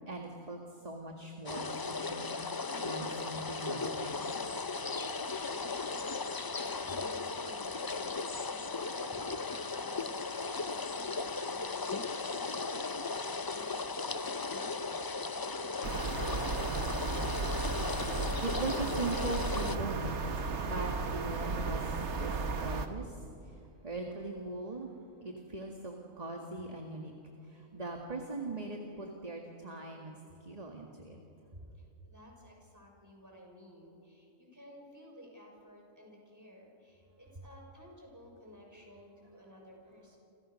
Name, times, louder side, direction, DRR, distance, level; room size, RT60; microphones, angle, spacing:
voice 1, 0.0-4.4 18.4-24.9 25.2-27.1 27.5-30.2 30.4-31.2, right 2 dB, 30° right, 1 dB, 2.1 m, -40 dB
sound 1, 1.5-19.8, left 4 dB, 35° left, 0.3 m, -37 dB
sound 2, 4.0-8.8, left 3 dB, 85° left, 4.0 m, -57 dB
voice 2, 5.1-16.8 31.7-40.2, equal, 15° right, -1 dB, 6.1 m, -55 dB
sound 3, 15.8-22.9, right 4 dB, 60° right, 1.5 m, -34 dB
29.5 x 26.0 x 6.5 m, 2.6 s
omnidirectional pair, 1.3 m